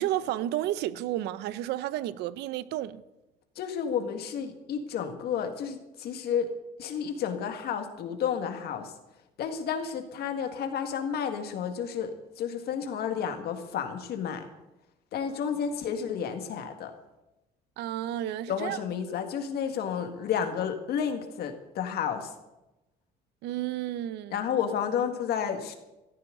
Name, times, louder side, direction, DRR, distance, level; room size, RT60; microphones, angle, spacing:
voice 1, 0.0-3.0 17.8-18.8 23.4-24.4, right 13 dB, 85° right, 0.7 m, -31 dB
voice 2, 3.6-6.5 6.8-8.9 9.4-14.5 15.1-16.9 18.5-22.3 24.3-25.7, left 7 dB, 70° left, 1.9 m, -31 dB
17.0 x 14.0 x 3.9 m
cardioid pair, 110°, 17 cm